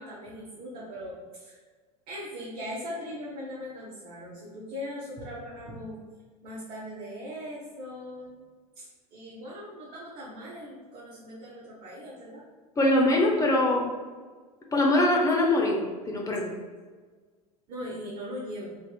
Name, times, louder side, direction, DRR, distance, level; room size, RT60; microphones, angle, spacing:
voice 1, 0.0-1.6 2.1-6.0 6.4-8.5 8.7-12.4 17.7-18.7, equal, 45° right, -7 dB, 0.9 m, -40 dB
voice 2, 12.8-13.8 14.7-16.5, left 1 dB, 15° left, 0 dB, 0.6 m, -23 dB
3.3 x 2.8 x 2.2 m, 1.4 s
figure-of-eight pair, 85°, 20 cm